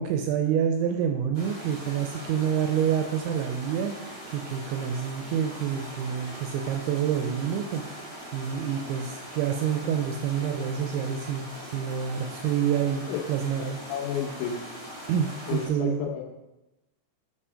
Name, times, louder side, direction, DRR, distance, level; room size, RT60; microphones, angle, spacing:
voice 1, 0.0-8.0 8.3-13.8 15.1-16.0, right 8 dB, 80° right, 4 dB, 2.7 m, -28 dB
sound 1, 1.3-15.7, equal, 15° right, 1.0 m, -41 dB
voice 2, 13.6-14.6 15.5-16.2, left 8 dB, 75° left, 0 dB, 3.0 m, -32 dB
7.0 x 5.7 x 4.9 m, 0.98 s
omnidirectional pair, 5.7 m